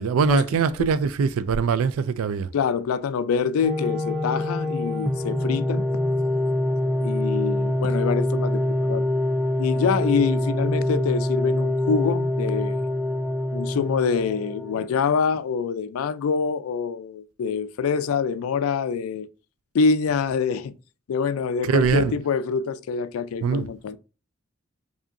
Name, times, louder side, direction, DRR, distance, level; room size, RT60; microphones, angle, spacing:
voice 1, 0.0-2.5 21.7-22.1 23.4-23.7, right 5 dB, 90° right, 0.4 m, -22 dB
voice 2, 2.5-5.9 7.0-9.1 9.6-12.8 13.5-19.3 19.7-20.7 21.1-24.0, left 5 dB, 90° left, 0.3 m, -25 dB
sound 1, 3.6-14.9, left 1 dB, 5° right, 0.4 m, -25 dB
4.9 x 2.7 x 2.6 m
head